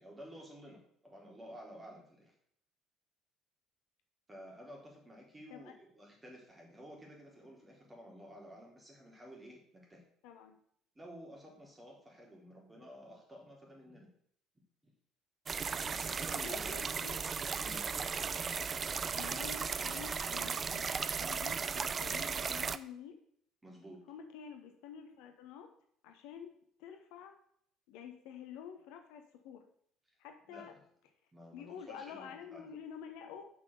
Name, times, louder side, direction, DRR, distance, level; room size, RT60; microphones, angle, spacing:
voice 1, 0.0-2.3 4.3-10.0 11.0-14.1 14.8-14.9 15.9-17.0 17.6-17.8 23.6-24.0 30.5-30.8 31.3-32.7, equal, 15° right, -2 dB, 3.7 m, -52 dB
voice 2, 10.2-10.6 16.3-17.2 19.1-23.2 24.1-25.7 26.0-27.3 27.9-29.6 30.2-30.7 31.5-33.5, left 7 dB, 60° left, 6 dB, 1.0 m, -49 dB
sound 1, 15.5-22.8, right 6 dB, 30° right, 0.4 m, -36 dB
7.2 x 6.1 x 6.8 m, 0.65 s
figure-of-eight pair, 55°, 0 cm